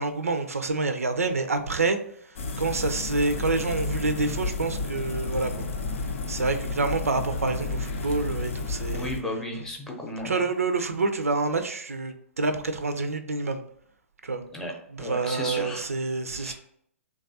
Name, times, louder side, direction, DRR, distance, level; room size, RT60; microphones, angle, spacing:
voice 1, 0.0-2.0 2.2-5.7 6.3-9.1 10.2-13.6 14.2-14.4 14.9-16.5, right 3 dB, 80° right, 0.4 m, -27 dB
sound 1, 2.4-9.2, left 3 dB, 65° left, 0.5 m, -31 dB
voice 2, 8.9-10.4 14.5-14.7 15.0-15.9 16.3-16.5, left 1 dB, 5° left, 0.6 m, -34 dB
3.1 x 2.3 x 2.6 m
figure-of-eight pair, 120°, 8 cm